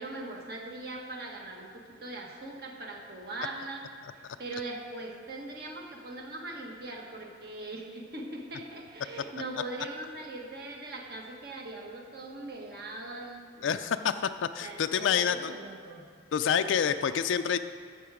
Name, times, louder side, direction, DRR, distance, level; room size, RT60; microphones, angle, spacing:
voice 1, 0.0-3.8 4.1-13.8 14.6-16.1, right 2 dB, 55° right, 0 dB, 1.5 m, -41 dB
voice 2, 13.6-15.5 16.3-17.6, left 7 dB, 90° left, 9 dB, 0.4 m, -27 dB
12.5 x 7.1 x 4.9 m, 2.1 s
head